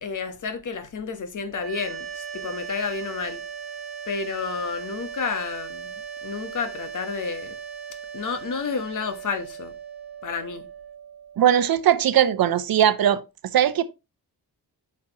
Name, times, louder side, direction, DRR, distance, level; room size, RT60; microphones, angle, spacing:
voice 1, 0.0-3.4 4.1-5.9 6.2-7.6 8.1-9.7 10.2-10.7, left 5 dB, 50° left, 1.1 m, -30 dB
sound 1, 1.5-12.6, right 7 dB, 40° right, 2.2 m, -38 dB
voice 2, 11.4-13.2 13.5-13.8, right 10 dB, 60° right, 0.7 m, -19 dB
8.6 x 6.0 x 2.9 m
wide cardioid pair, 165°, 40 cm